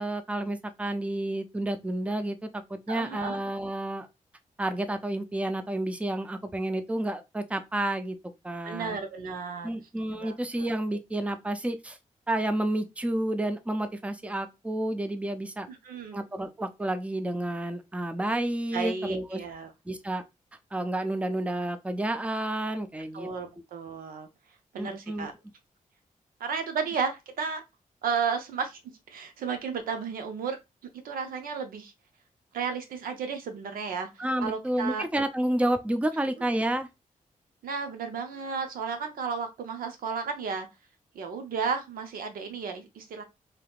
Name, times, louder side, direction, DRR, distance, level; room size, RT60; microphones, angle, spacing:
voice 1, 0.0-4.1 4.6-8.2 8.4-9.0 9.6-12.0 12.3-15.7 16.1-19.4 19.9-20.2 20.7-23.3 24.8-25.3 34.2-36.9, right 1 dB, 10° right, 0.5 m, -30 dB
voice 2, 2.9-3.4 8.6-9.8 10.1-10.7 15.7-16.2 18.7-19.7 23.1-24.3 24.7-25.3 26.4-27.6 28.0-28.8 29.1-30.6 31.0-31.9 32.5-35.0 37.6-40.7 41.1-43.2, right 5 dB, 90° right, 0.6 m, -33 dB
3.4 x 2.8 x 2.3 m
cardioid pair, 60°, 15 cm